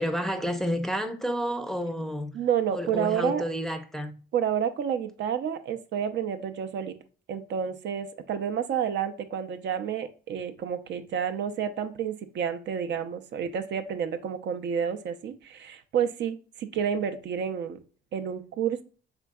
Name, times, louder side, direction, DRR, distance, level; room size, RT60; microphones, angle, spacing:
voice 1, 0.0-2.4 2.7-4.1, equal, ahead, 0.4 m, -30 dB
voice 2, 2.3-3.4 4.3-7.0 7.3-17.8 18.1-18.8, right 8 dB, 65° right, 0.4 m, -30 dB
3.7 x 3.4 x 2.2 m
cardioid pair, 90°, 20 cm